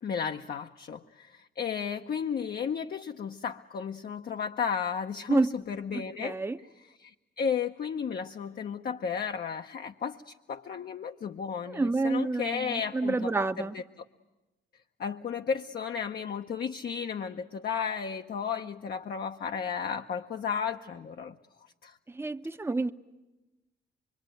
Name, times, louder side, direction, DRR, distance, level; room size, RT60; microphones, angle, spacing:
voice 1, 0.0-13.3 13.6-14.0 15.0-21.3 21.8-22.0, left 6 dB, 50° left, 4 dB, 0.8 m, -34 dB
voice 2, 5.9-6.6 11.7-13.8 22.1-22.9, right 3 dB, 10° right, 7 dB, 0.8 m, -29 dB
25.0 x 23.5 x 9.2 m, 1.1 s
cardioid pair, 90°, 20 cm